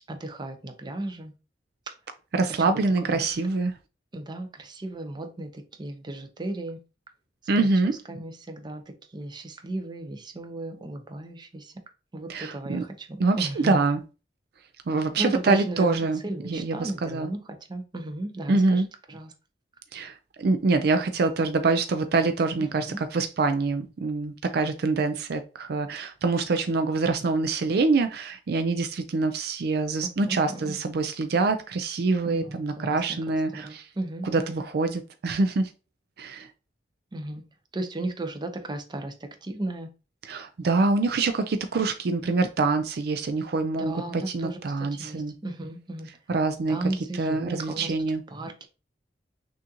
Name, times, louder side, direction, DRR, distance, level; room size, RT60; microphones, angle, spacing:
voice 1, 0.1-1.3 3.1-3.2 4.1-6.8 7.6-8.8 9.1-11.7 12.1-13.8 15.2-17.4 17.7-18.8 19.1-19.3 22.9-23.0 30.3-30.8 32.3-33.2 33.5-34.6 37.1-37.4 37.7-39.1 39.4-39.9 43.8-44.6 44.9-46.1 46.7-47.9 48.3-48.7, right 1 dB, 25° right, 0.7 m, -35 dB
voice 2, 2.3-3.7 7.5-7.9 12.3-12.8 13.2-14.0 14.9-17.3 18.5-18.9 19.9-33.9 34.2-35.7 36.2-36.5 40.2-45.3 46.3-46.8 47.1-48.2, right 3 dB, 60° right, 0.4 m, -25 dB
6.2 x 2.6 x 2.8 m
head